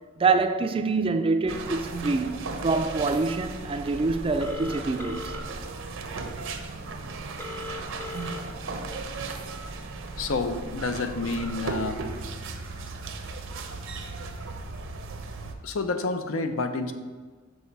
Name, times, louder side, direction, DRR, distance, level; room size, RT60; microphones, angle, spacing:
voice 1, 0.2-5.3, right 3 dB, 25° right, 0.3 m, -26 dB
sound 1, 1.5-15.5, right 3 dB, 65° right, 0.7 m, -36 dB
Telephone, 4.4-5.4 7.4-8.4, left 2 dB, 10° left, 0.6 m, -38 dB
voice 2, 10.2-12.0 15.6-16.9, left 3 dB, 70° left, 0.6 m, -29 dB
6.4 x 5.6 x 4.0 m
head